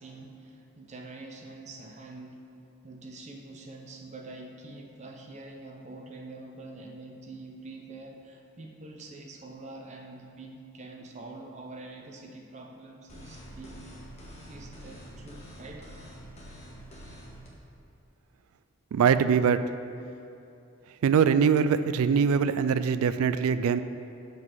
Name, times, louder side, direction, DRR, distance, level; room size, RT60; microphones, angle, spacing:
voice 1, 0.0-2.4 2.8-13.8 14.5-15.9, right 2 dB, 30° right, 1 dB, 0.7 m, -45 dB
sound 1, 13.1-17.5, equal, 30° left, 1.0 m, -46 dB
voice 2, 18.9-19.6 21.0-23.8, right 6 dB, 80° right, 13 dB, 0.3 m, -22 dB
7.3 x 4.0 x 6.1 m, 2.7 s
head